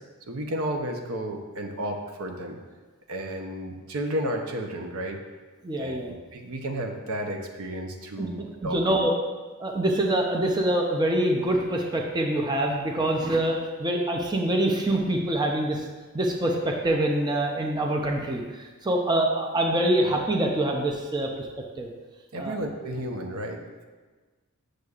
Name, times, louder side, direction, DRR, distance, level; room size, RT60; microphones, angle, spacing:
voice 1, 0.3-2.6 3.1-5.2 5.7-9.0 22.3-23.8, right 1 dB, 70° right, 3 dB, 0.7 m, -32 dB
voice 2, 5.6-6.1 8.2-9.1 9.6-15.8 16.1-21.5 21.8-21.9 22.4-22.5, right 1 dB, 20° right, 0 dB, 0.5 m, -25 dB
8.0 x 6.4 x 2.4 m, 1.3 s
head